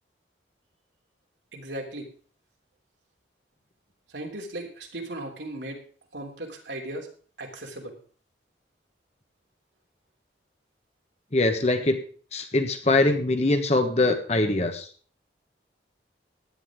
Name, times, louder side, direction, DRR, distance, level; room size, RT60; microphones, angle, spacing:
voice 1, 1.5-2.1 4.1-5.8 6.1-7.1 7.4-8.0, right 1 dB, 70° right, 1 dB, 3.1 m, -37 dB
voice 2, 11.3-12.0 12.3-14.9, left 2 dB, 35° left, 6 dB, 1.4 m, -23 dB
16.0 x 11.0 x 3.7 m, 0.42 s
head